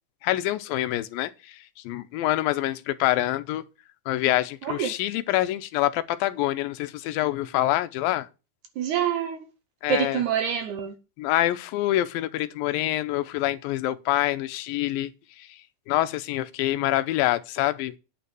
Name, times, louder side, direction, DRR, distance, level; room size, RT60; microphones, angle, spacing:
voice 1, 0.2-3.6 4.1-8.3 9.8-10.2 11.2-15.1 15.4-15.6 15.9-17.9, left 15 dB, 80° left, 2.5 m, -26 dB
voice 2, 4.6-4.9 8.8-9.4 9.9-10.9, right 8 dB, 70° right, 2.0 m, -26 dB
8.8 x 5.6 x 7.6 m
omnidirectional pair, 4.2 m